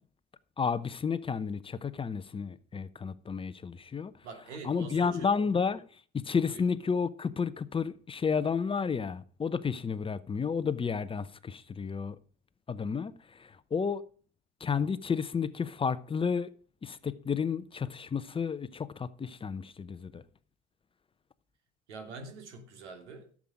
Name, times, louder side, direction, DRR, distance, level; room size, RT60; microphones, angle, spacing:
voice 1, 0.6-4.1 4.6-5.8 6.1-12.2 12.7-14.0 14.6-16.5 16.8-20.2, left 6 dB, 15° left, 0.7 m, -31 dB
voice 2, 4.2-5.3 6.5-6.7 21.9-23.4, right 4 dB, 80° right, 2.7 m, -44 dB
12.0 x 7.4 x 4.9 m
hypercardioid pair, 85°, 34 cm